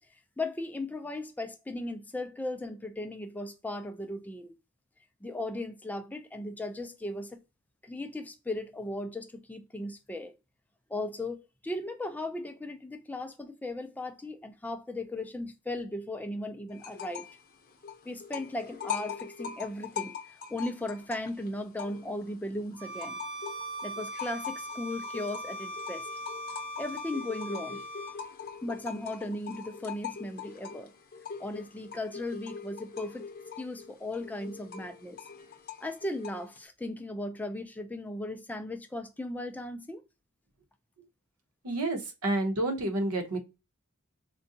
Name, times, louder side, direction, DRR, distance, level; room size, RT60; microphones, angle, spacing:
voice 1, 0.4-4.5 5.2-7.4 7.8-10.4 10.9-17.3 18.1-23.2 23.8-26.1 26.8-27.8 28.6-30.9 31.4-33.3 33.6-35.2 35.8-40.0, left 1 dB, 5° left, 0.3 m, -37 dB
sound 1, 16.8-17.4 17.7-22.3 22.7-36.6, left 7 dB, 45° left, 0.7 m, -42 dB
Bowed string instrument, 22.8-28.2, right 1 dB, 10° right, 0.8 m, -40 dB
voice 2, 41.6-43.4, right 2 dB, 80° right, 0.9 m, -29 dB
3.8 x 2.2 x 2.6 m
head